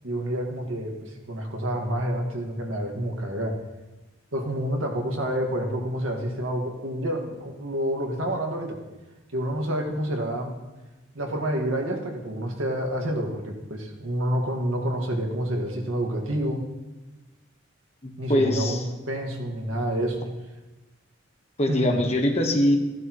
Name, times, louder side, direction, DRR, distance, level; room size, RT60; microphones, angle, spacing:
voice 1, 0.0-3.6 4.3-8.8 9.3-10.5 11.2-16.6 18.2-20.3 21.7-22.0, right 1 dB, 80° right, 1 dB, 1.9 m, -28 dB
voice 2, 18.0-18.8 21.6-22.8, left 1 dB, 30° left, 2 dB, 1.3 m, -23 dB
15.0 x 11.5 x 3.1 m, 1.1 s
head